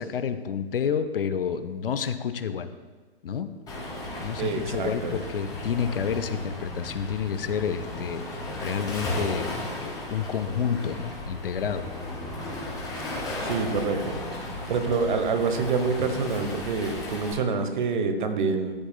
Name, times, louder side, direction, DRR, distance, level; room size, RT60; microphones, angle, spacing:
voice 1, 0.0-2.7 3.2-3.5 4.2-11.9, left 7 dB, 60° left, 12 dB, 0.6 m, -29 dB
Waves surf, 3.7-17.3, left 1 dB, 10° left, 2.0 m, -35 dB
voice 2, 4.4-5.1 13.4-14.2 14.7-18.7, right 4 dB, 50° right, 8 dB, 1.0 m, -26 dB
13.5 x 7.0 x 2.2 m, 1.3 s
figure-of-eight pair, 125°, 31 cm